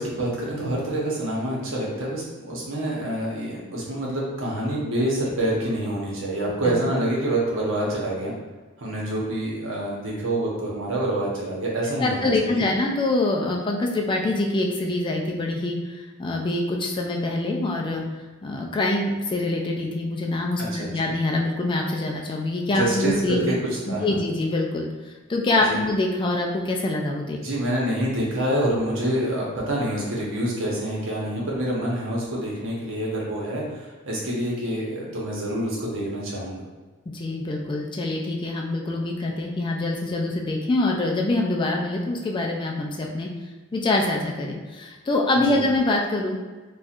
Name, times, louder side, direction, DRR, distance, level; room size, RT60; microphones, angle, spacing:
voice 1, 0.0-8.3 8.8-12.6 20.7-21.1 22.7-23.6 23.9-24.2 25.6-25.8 27.4-36.6 45.5-45.6, right 1 dB, 65° right, -4 dB, 0.9 m, -27 dB
voice 2, 12.0-18.0 18.4-23.5 23.9-24.9 25.3-27.4 37.1-43.3 43.7-46.4, left 2 dB, 25° left, 0 dB, 0.3 m, -25 dB
4.2 x 2.4 x 2.4 m, 1.3 s
head